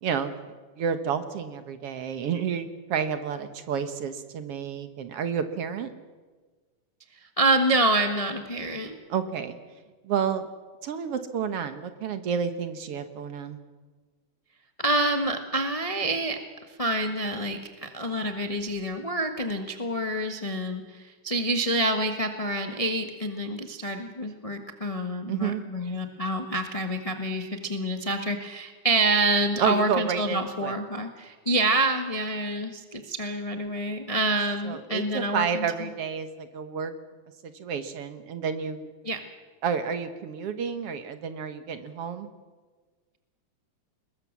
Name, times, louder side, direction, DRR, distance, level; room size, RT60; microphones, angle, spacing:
voice 1, 0.0-0.4 0.8-5.9 9.1-9.6 10.0-10.5 10.8-13.6 25.3-25.6 29.6-30.8 34.6-36.9 37.4-38.9 39.6-42.3, right 7 dB, 60° right, 9 dB, 1.9 m, -30 dB
voice 2, 7.4-9.0 14.8-16.4 16.8-35.6 39.0-39.2, right 1 dB, 40° left, 5 dB, 0.4 m, -27 dB
22.5 x 20.5 x 7.5 m, 1.4 s
omnidirectional pair, 3.3 m